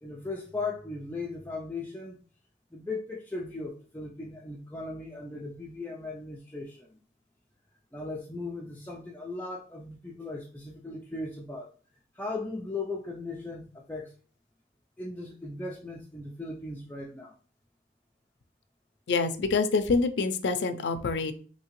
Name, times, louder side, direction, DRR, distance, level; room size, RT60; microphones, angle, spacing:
voice 1, 0.0-2.2 2.7-6.9 7.9-11.7 12.1-14.1 15.0-17.3, left 3 dB, 10° left, -2 dB, 0.4 m, -37 dB
voice 2, 19.1-21.3, left 4 dB, 75° left, 9 dB, 0.4 m, -26 dB
3.6 x 2.7 x 3.0 m, 0.41 s
head